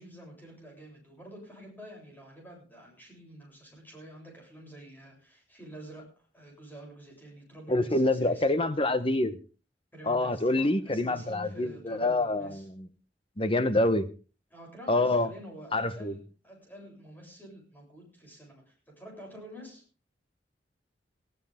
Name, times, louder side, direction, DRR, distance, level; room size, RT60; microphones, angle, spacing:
voice 1, 0.0-8.6 9.9-12.7 13.8-13.9 14.5-19.8, right 1 dB, 10° left, 0 dB, 7.7 m, -48 dB
voice 2, 7.7-9.3 10.1-12.9 13.4-14.0 14.9-15.3 15.7-16.1, left 2 dB, 30° left, 11 dB, 1.1 m, -26 dB
19.0 x 15.5 x 3.6 m, 0.36 s
head